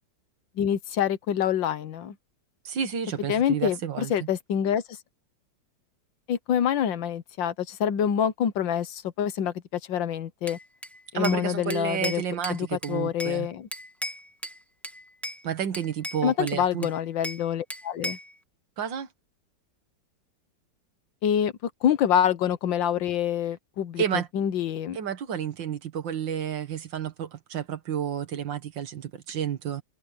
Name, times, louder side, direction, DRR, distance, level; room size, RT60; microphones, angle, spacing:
voice 1, 0.6-2.2 3.3-4.8 6.3-10.6 11.1-12.2 12.5-13.7 16.2-18.2 21.2-24.0 24.3-25.0, left 9 dB, 85° left, 1.8 m, -26 dB
voice 2, 2.7-4.3 11.1-13.5 15.4-16.9 18.8-19.1 24.0-24.3 24.9-29.8, right 8 dB, 80° right, 2.2 m, -30 dB
Bell / Glass, 10.5-11.4 11.7-13.4 13.7-14.6 14.8-15.4 15.7-17.4 17.7-18.3, equal, ahead, 1.8 m, -36 dB
omnidirectional pair, 2.0 m